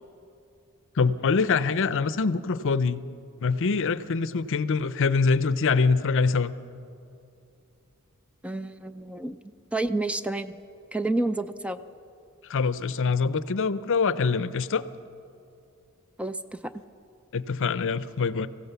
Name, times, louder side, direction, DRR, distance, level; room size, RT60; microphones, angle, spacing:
voice 1, 1.0-3.0 3.4-6.5 12.5-14.8 17.3-18.5, left 4 dB, 60° left, 15 dB, 0.6 m, -24 dB
voice 2, 8.4-9.4 9.7-10.5 10.9-11.8 16.2-16.4, right 2 dB, 5° right, 11 dB, 0.4 m, -29 dB
24.0 x 15.5 x 6.8 m, 2.6 s
head